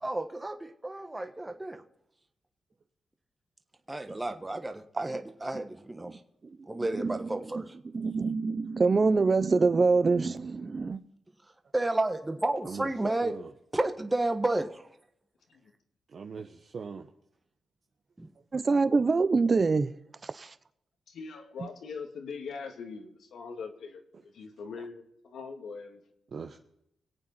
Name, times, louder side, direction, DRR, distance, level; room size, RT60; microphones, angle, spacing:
voice 1, 0.0-1.8 3.9-6.2 6.7-7.7 11.7-13.3 13.7-14.9 18.2-18.3, right 2 dB, 15° right, 1.3 m, -31 dB
voice 2, 6.9-7.3 7.9-11.0 18.5-19.9 20.2-20.5, right 4 dB, 40° right, 0.8 m, -25 dB
voice 3, 16.1-17.1 26.3-26.6, right 5 dB, 55° right, 1.0 m, -40 dB
voice 4, 21.1-26.0, left 5 dB, 75° left, 2.2 m, -42 dB
24.0 x 8.6 x 4.3 m
cardioid pair, 90°, 0 cm